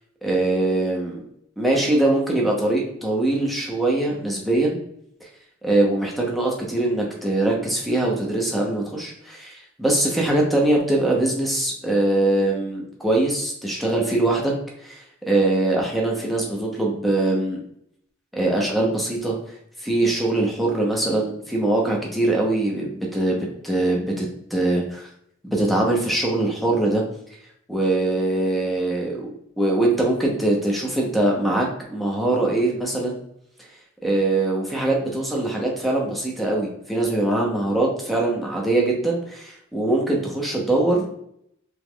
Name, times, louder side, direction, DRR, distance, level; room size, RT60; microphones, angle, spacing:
voice 1, 0.2-1.2 1.6-4.8 5.6-14.5 14.8-17.6 18.3-19.3 19.8-25.1 25.4-27.0 27.7-29.3 29.6-33.2 34.0-41.2, right 2 dB, ahead, -1 dB, 0.7 m, -22 dB
3.4 x 3.0 x 2.2 m, 0.73 s
head